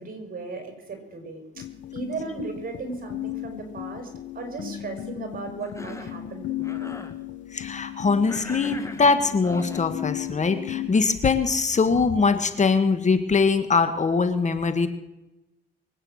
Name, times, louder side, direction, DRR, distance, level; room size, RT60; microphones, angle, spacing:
voice 1, 0.0-1.6 1.9-7.0, right 3 dB, 45° right, 5 dB, 5.4 m, -36 dB
sound 1, 1.6-10.9, left 12 dB, 70° left, 1.1 m, -35 dB
Cough, 5.6-6.2 6.6-7.2 8.3-9.9, left 2 dB, 15° left, 1.8 m, -40 dB
voice 2, 7.5-14.9, left 4 dB, 35° left, 9 dB, 1.6 m, -22 dB
23.5 x 9.1 x 6.4 m, 0.96 s
cardioid pair, 90°, 20 cm